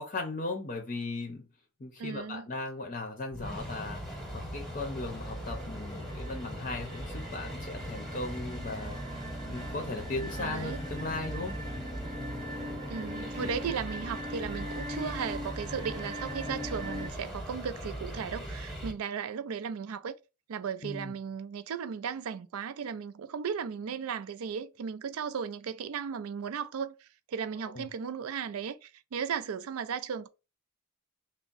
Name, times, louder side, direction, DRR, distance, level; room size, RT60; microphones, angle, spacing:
voice 1, 0.0-1.5 1.8-11.6 12.1-12.4 13.4-13.5 20.8-21.1 27.6-27.9, left 2 dB, 35° left, 0.5 m, -37 dB
voice 2, 2.0-2.5 10.4-10.8 12.9-20.1 20.5-30.3, right 6 dB, 80° right, 0.4 m, -36 dB
sound 1, 3.3-18.9, equal, ahead, 0.9 m, -40 dB
sound 2, 4.1-4.4 4.8-17.1, equal, 25° right, 0.6 m, -42 dB
3.5 x 2.1 x 3.9 m
head